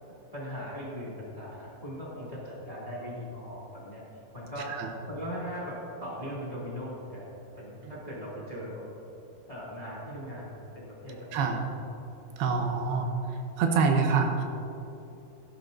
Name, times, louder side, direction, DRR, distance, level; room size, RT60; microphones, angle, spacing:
voice 1, 0.3-4.0 4.3-8.8 9.5-11.6 12.6-13.2, equal, 10° left, -6 dB, 1.9 m, -39 dB
voice 2, 12.4-13.1 13.6-14.4, right 5 dB, 85° right, 3 dB, 2.9 m, -25 dB
16.5 x 10.5 x 2.7 m, 3.0 s
omnidirectional pair, 4.5 m